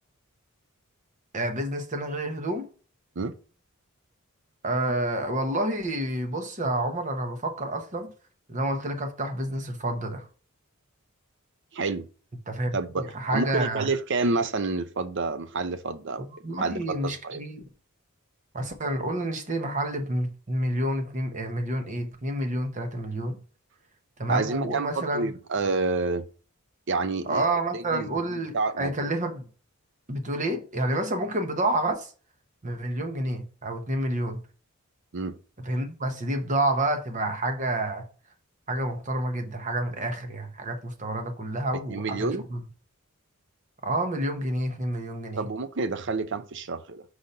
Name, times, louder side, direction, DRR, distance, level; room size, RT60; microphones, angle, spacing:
voice 1, 1.3-2.7 4.6-8.1 8.5-10.3 12.5-13.9 16.3-17.6 18.5-23.4 24.2-25.3 27.2-29.5 30.1-32.1 32.6-34.4 35.6-38.1 38.7-42.6 43.8-45.5, right 1 dB, 35° right, 1.0 m, -29 dB
voice 2, 11.7-12.1 12.7-16.3 16.6-17.4 24.3-26.3 26.9-27.4 27.7-28.9 35.1-35.4 41.9-42.5 45.4-47.0, right 3 dB, 55° right, 0.6 m, -29 dB
5.0 x 4.0 x 5.6 m
head